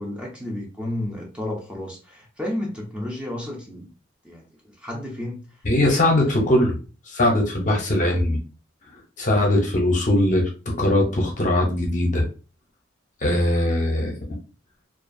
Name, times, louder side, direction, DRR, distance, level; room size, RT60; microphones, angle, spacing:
voice 1, 0.0-3.9 4.2-5.5 7.6-7.8, left 1 dB, 5° right, -2 dB, 0.5 m, -32 dB
voice 2, 5.6-6.8 7.1-8.4 9.2-12.3 13.2-14.1, left 1 dB, 40° left, 1 dB, 0.6 m, -20 dB
2.4 x 2.4 x 2.5 m, 0.34 s
head